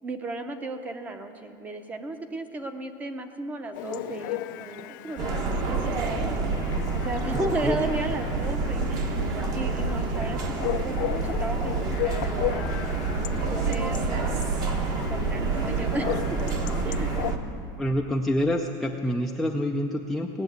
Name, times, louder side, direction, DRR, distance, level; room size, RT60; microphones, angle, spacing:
voice 1, 0.0-6.4 6.9-12.7 13.3-14.1 14.9-16.6 16.8-17.1, right 2 dB, 15° right, 8 dB, 0.7 m, -35 dB
Chatter / Bark / Livestock farm animals working animals, 3.7-17.3, left 17 dB, 65° left, 0.4 m, -36 dB
sound 1, 5.2-17.4, right 3 dB, 35° right, 1.1 m, -28 dB
voice 2, 17.8-20.4, left 1 dB, ahead, 1 dB, 0.4 m, -27 dB
18.5 x 7.2 x 9.2 m, 2.7 s
supercardioid pair, 170°, 11 cm